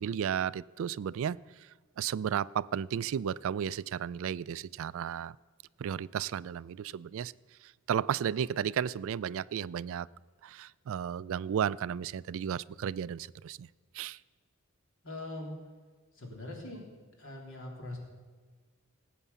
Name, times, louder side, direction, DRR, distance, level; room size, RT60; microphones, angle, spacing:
voice 1, 0.0-5.4 5.8-7.3 7.6-10.1 10.4-13.7 13.9-14.2, right 8 dB, 65° right, 19 dB, 0.3 m, -34 dB
voice 2, 15.0-15.6 16.1-16.9 17.2-18.0, left 1 dB, 65° left, 0 dB, 3.5 m, -41 dB
18.5 x 8.4 x 6.9 m, 1.5 s
head